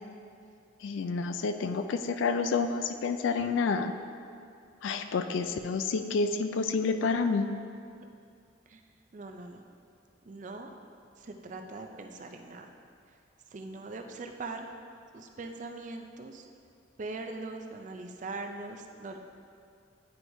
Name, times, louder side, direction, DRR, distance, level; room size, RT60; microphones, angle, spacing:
voice 1, 0.8-3.9 4.8-7.5, left 4 dB, 85° left, 8 dB, 0.4 m, -29 dB
voice 2, 7.7-8.1 8.7-8.8 9.1-9.6 10.2-10.7 11.2-12.7 13.1-13.2 13.5-14.7 15.1-16.5 17.0-19.2, right 3 dB, 40° right, 4 dB, 0.4 m, -41 dB
9.4 x 4.5 x 2.7 m, 2.4 s
head